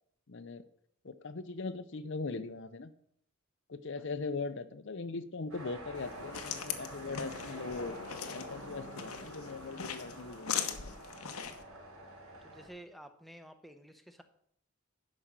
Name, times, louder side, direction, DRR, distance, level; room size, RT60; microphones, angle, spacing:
voice 1, 0.3-0.6 1.0-2.9 3.7-8.0 8.3-11.0, left 3 dB, 55° left, 12 dB, 0.7 m, -40 dB
sound 1, 5.5-12.7, right 1 dB, 90° right, 4.6 m, -48 dB
sound 2, 5.9-11.6, left 7 dB, 90° left, 1.1 m, -40 dB
voice 2, 12.4-14.2, right 1 dB, ahead, 7 dB, 0.8 m, -52 dB
11.0 x 5.3 x 7.4 m, 0.66 s
head